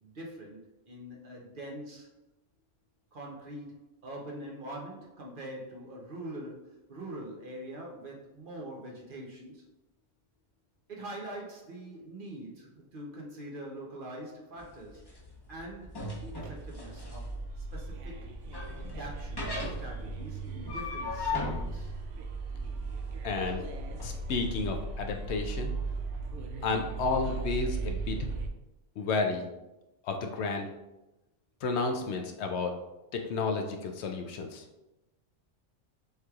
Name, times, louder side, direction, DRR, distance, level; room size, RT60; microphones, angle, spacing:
voice 1, 0.0-2.1 3.1-9.6 10.9-15.1 15.5-17.3 17.6-18.3 18.8-21.9, right 1 dB, 50° right, -2 dB, 0.9 m, -44 dB
sound 1, 14.6-24.1, left 3 dB, 20° left, 0.9 m, -39 dB
sound 2, 16.2-28.5, right 3 dB, 75° right, 0.9 m, -37 dB
voice 2, 23.2-23.6 24.0-25.8 26.6-28.3 29.0-29.5 30.0-30.7 31.6-32.7 33.1-34.6, left 4 dB, 70° left, 4 dB, 0.8 m, -31 dB
6.6 x 3.1 x 2.4 m, 0.97 s
omnidirectional pair, 1.3 m